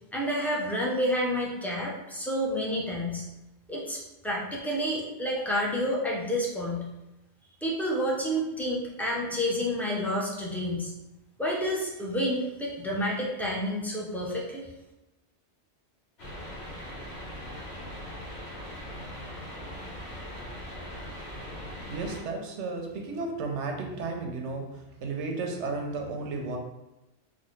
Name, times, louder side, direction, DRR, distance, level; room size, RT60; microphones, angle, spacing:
voice 1, 0.1-3.2 3.7-6.9 7.6-10.9 11.4-14.6, equal, 5° left, -4 dB, 0.3 m, -29 dB
sound 1, 16.2-22.2, equal, 65° left, 1.1 m, -40 dB
voice 2, 21.9-26.6, right 3 dB, 90° right, 2 dB, 0.9 m, -33 dB
4.0 x 2.1 x 3.1 m, 1.0 s
omnidirectional pair, 1.2 m